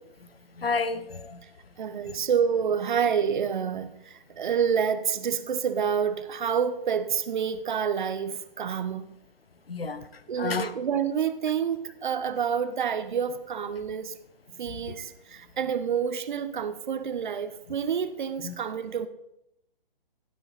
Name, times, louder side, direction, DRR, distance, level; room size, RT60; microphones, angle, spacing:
voice 1, 0.6-1.4 2.0-2.1 9.7-10.1 10.4-10.7 14.9-15.0 18.4-18.6, left 4 dB, 80° left, 1.2 m, -30 dB
voice 2, 1.8-9.1 10.3-14.1 14.6-19.1, right 7 dB, 55° right, 1.1 m, -28 dB
16.0 x 8.3 x 4.2 m
figure-of-eight pair, 140°, 29 cm